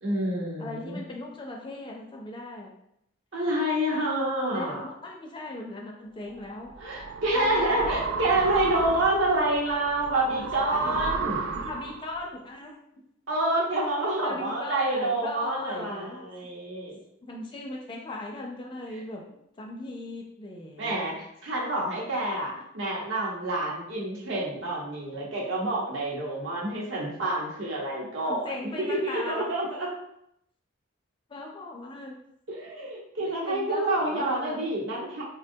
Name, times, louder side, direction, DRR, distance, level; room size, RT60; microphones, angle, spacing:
voice 1, 0.0-1.0 3.3-4.8 6.8-11.4 13.3-17.0 20.8-21.1 21.4-29.9 32.5-35.2, right 1 dB, 65° right, -3 dB, 0.9 m, -28 dB
voice 2, 0.6-2.7 4.5-6.7 7.3-8.1 10.3-11.0 11.5-13.0 14.2-16.2 17.2-19.2 19.6-21.1 22.1-22.2 28.2-29.4 31.3-32.2 33.2-34.7, left 2 dB, 25° left, 0 dB, 0.4 m, -39 dB
sound 1, 6.4-12.2, right 5 dB, 90° right, 0.3 m, -33 dB
3.4 x 2.1 x 2.7 m, 0.77 s
head